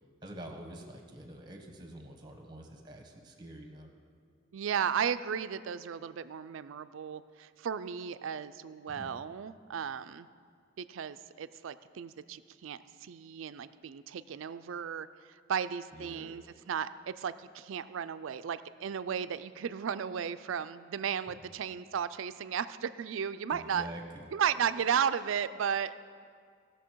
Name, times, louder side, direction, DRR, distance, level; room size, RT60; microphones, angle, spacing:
voice 1, 0.2-3.9 8.9-9.1 15.9-16.4 21.4-21.5 23.5-24.3, right 1 dB, 20° right, 2 dB, 1.2 m, -46 dB
voice 2, 4.5-10.3 10.8-23.9 24.3-25.9, right 7 dB, 75° right, 13 dB, 0.4 m, -34 dB
18.0 x 6.6 x 4.6 m, 2.1 s
head